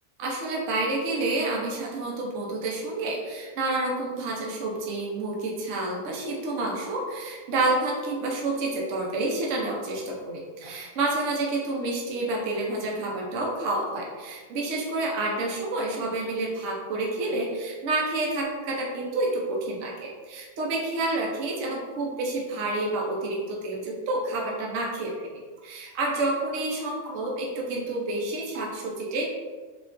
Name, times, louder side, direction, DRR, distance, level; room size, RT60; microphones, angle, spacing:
voice 1, 0.2-29.3, right 2 dB, 65° right, -2 dB, 1.0 m, -29 dB
5.0 x 2.4 x 2.5 m, 1.5 s
omnidirectional pair, 1.5 m